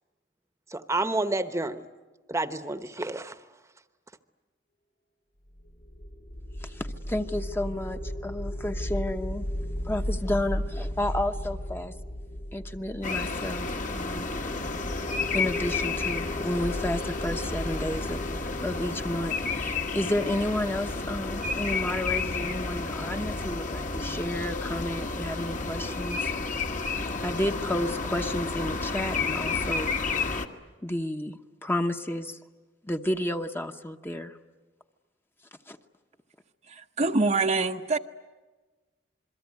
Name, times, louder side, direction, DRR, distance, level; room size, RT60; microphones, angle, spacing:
voice 1, 0.7-1.9 2.3-3.3, right 2 dB, 15° right, 11 dB, 1.0 m, -29 dB
sound 1, 5.6-20.8, equal, 70° left, 5.3 m, -36 dB
voice 2, 6.6-9.5 9.8-11.9 12.5-13.7 13.9-14.3 15.3-26.3 27.2-30.4 30.8-32.4 32.8-34.4 35.7-35.8, left 1 dB, 10° left, 6 dB, 0.9 m, -31 dB
sound 2, 13.0-30.5, left 3 dB, 45° left, 1.5 m, -31 dB
voice 3, 36.7-38.0, right 3 dB, 40° right, 6 dB, 0.8 m, -25 dB
27.5 x 22.5 x 9.6 m, 1.3 s
head